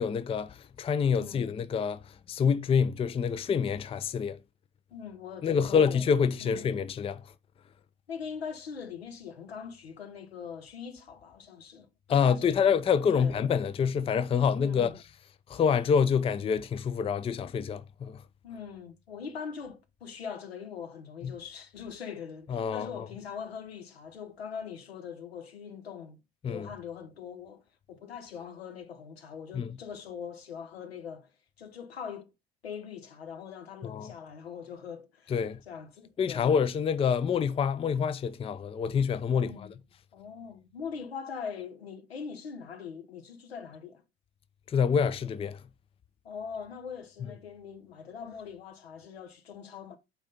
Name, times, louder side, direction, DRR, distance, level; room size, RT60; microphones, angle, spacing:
voice 1, 0.0-2.0 2.3-4.4 5.4-7.2 12.1-15.0 15.5-18.2 21.2-21.3 22.5-22.9 26.4-26.7 29.5-29.7 33.8-34.1 35.3-35.6 36.2-39.7 44.7-45.6, left 6 dB, 20° left, 0.5 m, -27 dB
voice 2, 1.2-1.5 4.9-6.1 6.4-6.7 8.1-12.7 13.1-13.4 14.6-15.0 18.4-26.2 26.4-31.3 31.6-32.3 32.6-36.5 39.3-39.8 40.1-44.0 46.2-50.0, left 6 dB, 80° left, 1.0 m, -42 dB
6.2 x 4.2 x 5.1 m
figure-of-eight pair, 60°, 30 cm